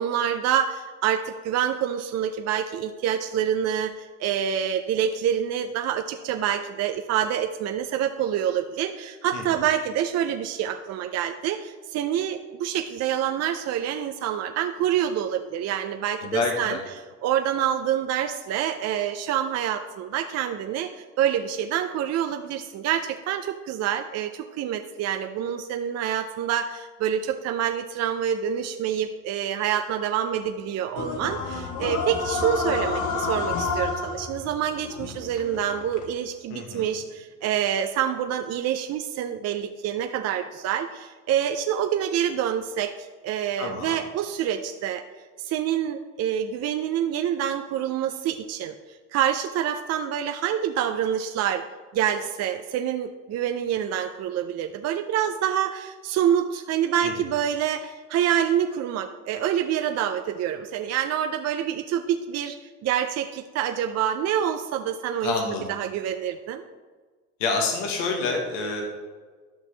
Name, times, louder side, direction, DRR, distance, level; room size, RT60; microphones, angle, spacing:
voice 1, 0.0-16.8 17.2-45.1 45.4-48.8 49.1-51.7 51.9-66.6, right 9 dB, 45° right, 6 dB, 0.5 m, -27 dB
voice 2, 16.2-16.8 36.5-36.9 43.6-44.0 57.0-57.1 65.2-65.7 67.4-68.8, left 4 dB, 80° left, 1 dB, 1.4 m, -27 dB
sound 1, 31.0-36.1, left 4 dB, 55° left, 1.3 m, -30 dB
11.0 x 5.9 x 3.3 m, 1.4 s
supercardioid pair, 85°, 37 cm